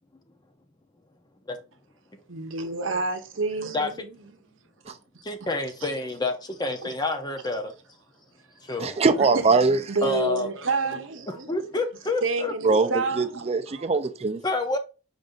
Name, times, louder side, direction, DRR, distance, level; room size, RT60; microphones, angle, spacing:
voice 1, 2.3-4.4 6.8-6.9 9.3-9.4 9.9-11.5 12.2-13.9, right 4 dB, 75° right, 0.8 m, -29 dB
voice 2, 5.2-7.7 8.7-9.0 10.0-10.6 10.9-11.0 11.3-12.8 14.4-14.8, left 2 dB, 20° left, 0.7 m, -28 dB
voice 3, 8.8-9.8 12.6-12.9 13.2-14.4, right 4 dB, 30° right, 0.5 m, -21 dB
5.2 x 2.6 x 3.7 m
head